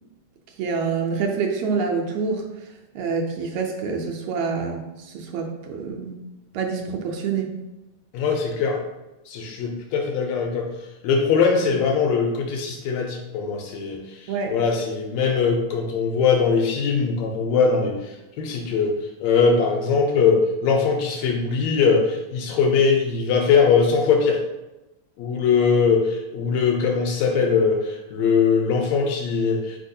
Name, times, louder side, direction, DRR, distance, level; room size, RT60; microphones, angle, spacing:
voice 1, 0.6-2.4 3.0-6.2 6.5-7.6 14.3-14.6, right 5 dB, 80° right, 2 dB, 1.7 m, -26 dB
voice 2, 8.1-8.8 9.3-10.7 11.0-14.0 14.5-18.0 18.4-24.4 25.2-29.8, left 5 dB, 80° left, 2 dB, 1.7 m, -21 dB
4.5 x 4.1 x 2.7 m, 0.99 s
omnidirectional pair, 3.3 m